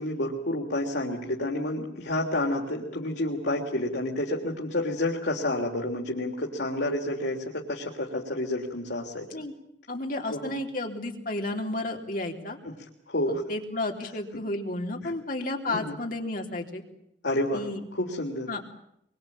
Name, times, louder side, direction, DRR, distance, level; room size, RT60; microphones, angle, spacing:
voice 1, 0.0-9.3 10.3-10.5 12.6-12.7 13.1-13.4 15.0-15.1 15.7-16.0 17.2-17.7 17.9-18.5, left 1 dB, 80° left, -2 dB, 3.5 m, -29 dB
voice 2, 9.9-12.6 13.3-16.8 17.5-17.8 18.5-18.6, left 2 dB, 50° left, 2 dB, 3.7 m, -32 dB
24.5 x 24.0 x 8.8 m, 0.76 s
head